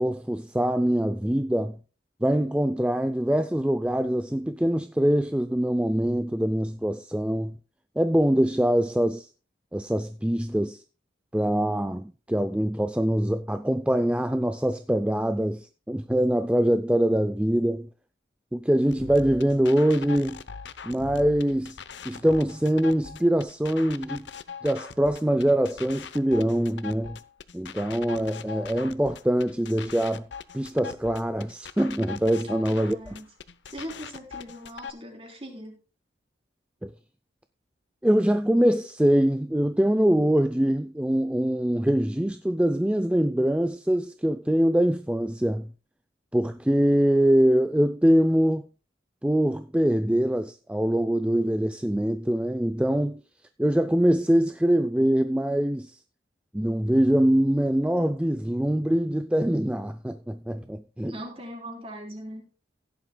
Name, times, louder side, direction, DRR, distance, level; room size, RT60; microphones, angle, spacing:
voice 1, 0.0-1.8 2.2-7.6 8.0-9.3 9.7-10.8 11.3-17.9 18.5-20.4 20.8-21.8 22.0-24.3 24.6-27.2 27.5-30.3 30.5-33.0 36.8-36.9 38.0-45.7 46.3-48.7 49.2-53.2 53.6-56.0 56.5-61.2, equal, 5° right, 0.4 m, -23 dB
sound 1, 18.9-34.9, left 6 dB, 70° left, 0.8 m, -41 dB
voice 2, 32.4-33.3 33.7-35.8 61.1-62.5, equal, 30° right, 3.6 m, -40 dB
16.0 x 11.0 x 2.3 m
head